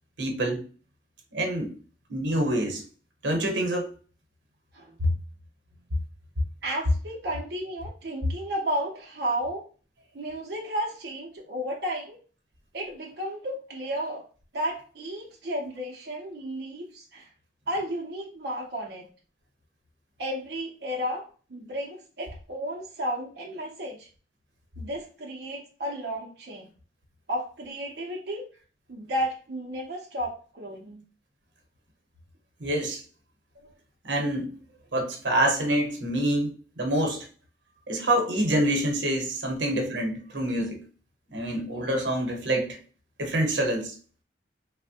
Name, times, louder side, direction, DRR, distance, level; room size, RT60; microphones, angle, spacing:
voice 1, 0.2-0.6 1.3-1.7 2.1-2.8 3.2-3.9 32.6-33.0 34.0-34.5 34.9-37.3 37.9-40.8 41.3-42.8 43.2-43.9, right 1 dB, 90° right, 0.8 m, -26 dB
voice 2, 6.6-9.6 10.1-12.2 12.7-14.2 14.5-17.3 17.7-19.1 20.2-24.1 24.8-26.7 27.3-28.4 28.9-31.0 33.6-33.7, equal, 65° right, 0.5 m, -33 dB
3.1 x 2.1 x 2.7 m
head